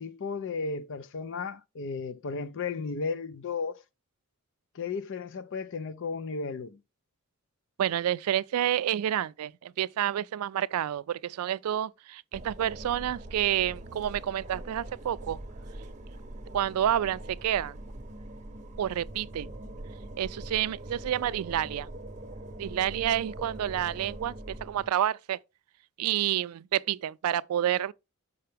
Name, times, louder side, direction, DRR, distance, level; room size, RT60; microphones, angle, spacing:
voice 1, 0.0-3.8 4.7-6.8, left 4 dB, 60° left, 0.5 m, -34 dB
voice 2, 7.8-15.4 16.5-17.8 18.8-19.5 20.2-21.9 22.6-24.4 24.6-25.4 26.0-27.9, right 11 dB, 85° right, 0.3 m, -29 dB
sound 1, 12.3-24.9, right 1 dB, 35° right, 0.8 m, -42 dB
6.7 x 5.6 x 3.4 m
head